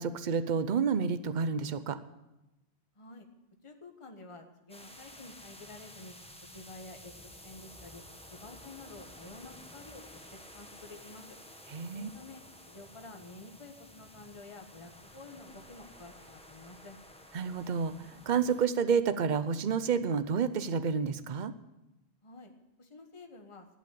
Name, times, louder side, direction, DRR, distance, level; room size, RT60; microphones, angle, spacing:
voice 1, 0.0-2.0 11.7-12.1 17.3-21.5, right 6 dB, 50° right, 12 dB, 0.8 m, -29 dB
voice 2, 3.0-3.3 3.6-6.1 6.5-7.1 7.4-8.0 8.4-10.0 10.5-11.2 11.9-12.4 12.7-17.0 22.2-22.5 22.8-23.6, left 2 dB, 30° left, 4 dB, 1.3 m, -50 dB
sound 1, 4.7-18.7, left 1 dB, 5° left, 1.1 m, -52 dB
11.5 x 8.5 x 8.5 m, 0.94 s
omnidirectional pair, 1.1 m